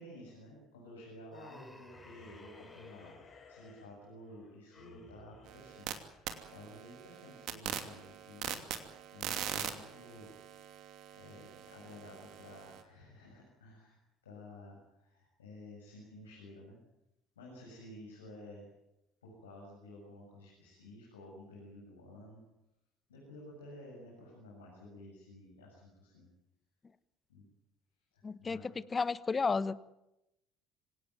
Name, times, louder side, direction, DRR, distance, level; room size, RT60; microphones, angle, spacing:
voice 1, 0.0-8.6 9.1-10.3 11.1-14.0 14.2-16.8 17.4-18.7 19.2-22.4 23.1-26.3 27.3-27.4 28.1-28.7, left 1 dB, 85° left, -2 dB, 7.2 m, -52 dB
Human voice, 1.3-3.2, left 1 dB, 10° left, 5.2 m, -55 dB
sound 1, 1.9-6.6, left 4 dB, 45° left, 7.9 m, -57 dB
sound 2, 5.5-5.9 6.3-12.8, right 10 dB, 60° right, 2.8 m, -42 dB
voice 2, 28.2-29.8, left 4 dB, 30° left, 16 dB, 1.2 m, -32 dB
26.0 x 18.0 x 9.4 m, 0.89 s
hypercardioid pair, 60°, 0 cm